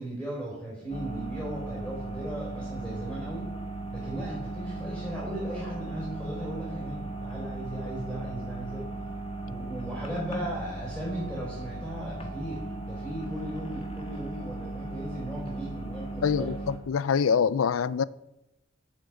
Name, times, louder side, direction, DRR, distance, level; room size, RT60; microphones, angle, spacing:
voice 1, 0.0-3.5 3.9-8.9 9.4-16.6, right 1 dB, ahead, 4.3 m, -37 dB
sound 1, 0.9-16.8, right 2 dB, 30° left, 1.5 m, -37 dB
voice 2, 16.2-18.0, left 6 dB, 85° left, 0.4 m, -25 dB
8.7 x 7.6 x 7.1 m
head